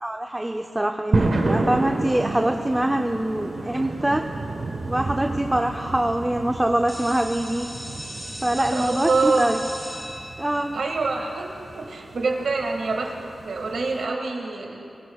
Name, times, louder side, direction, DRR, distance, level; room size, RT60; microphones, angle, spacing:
voice 1, 0.0-4.2 4.9-7.7 8.4-9.6 10.4-10.7, right 1 dB, 15° right, 4 dB, 0.6 m, -24 dB
sound 1, 1.1-14.0, right 2 dB, 60° right, 1.3 m, -31 dB
sound 2, 6.9-12.5, equal, 15° left, 3.9 m, -39 dB
voice 2, 8.5-9.5 10.7-13.1 13.4-14.9, right 3 dB, 90° right, 1 dB, 1.9 m, -26 dB
23.5 x 17.0 x 2.4 m, 2.7 s
wide cardioid pair, 100°, 0 cm